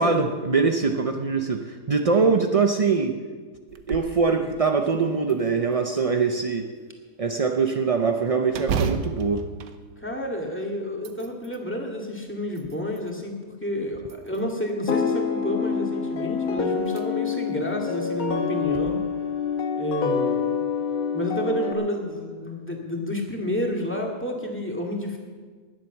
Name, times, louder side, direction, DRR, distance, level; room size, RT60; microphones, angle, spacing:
voice 1, 0.0-3.2 3.9-6.7 7.2-9.4, right 4 dB, 65° right, 4 dB, 0.3 m, -23 dB
sound 1, 3.7-4.2 4.7-4.8 5.3-6.1 8.5-10.5 10.9-11.6 12.3-13.1 14.0-14.7 16.2-16.3 16.8-17.0 17.5-17.6 18.6-18.9, right 6 dB, 85° right, 1.5 m, -33 dB
voice 2, 10.0-19.0 19.7-20.6 21.1-25.2, left 1 dB, 5° left, 0 dB, 2.1 m, -30 dB
sound 2, 14.9-21.7, left 6 dB, 60° left, 1.5 m, -26 dB
20.0 x 7.8 x 7.2 m, 1.5 s
omnidirectional pair, 1.8 m